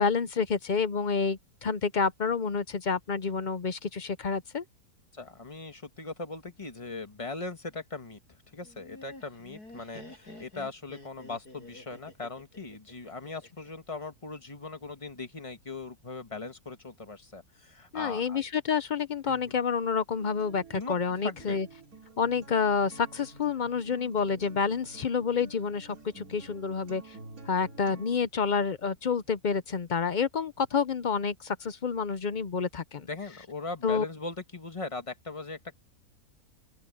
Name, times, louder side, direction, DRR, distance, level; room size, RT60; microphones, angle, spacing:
voice 1, 0.0-4.6 17.9-21.7 22.2-27.2 27.5-33.1 33.8-34.0, left 5 dB, 55° left, 0.5 m, -29 dB
voice 2, 5.1-8.2 8.5-18.4 19.3-19.5 20.7-20.9 21.2-21.6 33.0-35.7, left 3 dB, 20° left, 1.7 m, -39 dB
Laughter, 8.6-13.7, left 2 dB, 85° left, 8.7 m, -49 dB
Acoustic guitar, 20.2-28.2, right 3 dB, 65° right, 3.9 m, -49 dB
open air
omnidirectional pair, 1.6 m